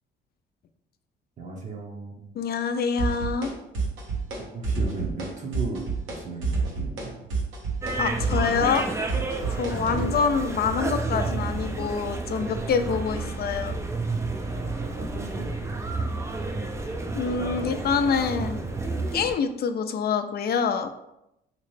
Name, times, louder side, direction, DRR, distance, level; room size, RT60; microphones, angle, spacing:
voice 1, 1.4-2.3 4.4-7.2 9.9-10.0 14.6-15.6 15.9-16.1, right 3 dB, 40° right, -1 dB, 0.7 m, -36 dB
voice 2, 2.3-3.5 8.0-8.9 9.5-13.7 17.1-18.6 19.1-20.9, left 6 dB, 50° left, 8 dB, 0.4 m, -26 dB
sound 1, 3.0-3.5 3.7-4.4 4.6-5.3 5.5-6.2 6.4-10.1, right 4 dB, 80° right, 0.9 m, -28 dB
sound 2, 7.8-19.3, right 3 dB, 15° right, 0.4 m, -30 dB
3.2 x 2.9 x 3.1 m, 0.85 s
cardioid pair, 90°, 20 cm